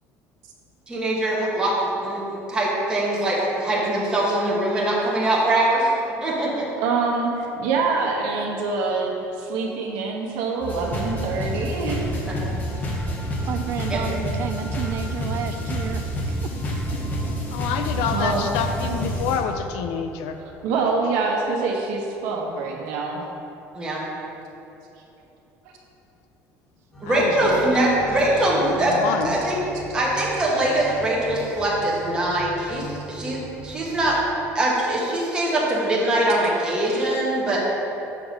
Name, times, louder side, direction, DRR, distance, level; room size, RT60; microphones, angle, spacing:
voice 1, 0.9-5.9 6.2-6.7 12.3-12.4 13.9-14.0 23.7-24.0 27.0-29.0 29.2-29.7 29.9-34.2 34.5-37.6, right 1 dB, 15° right, -5 dB, 1.2 m, -22 dB
voice 2, 6.8-12.1 18.1-18.4 20.6-23.2 27.4-27.5, right 4 dB, 80° right, 0 dB, 1.1 m, -25 dB
sound 1, 10.6-19.4, equal, 30° left, 1.0 m, -28 dB
voice 3, 13.4-16.8, right 9 dB, 45° right, 8 dB, 0.3 m, -32 dB
voice 4, 17.5-20.4 20.8-21.1 27.0-29.4, left 6 dB, 85° left, 7 dB, 0.6 m, -28 dB
sound 2, 26.9-34.1, right 2 dB, 10° left, 1.4 m, -39 dB
6.9 x 3.6 x 6.1 m, 2.9 s
cardioid pair, 160°, 6 cm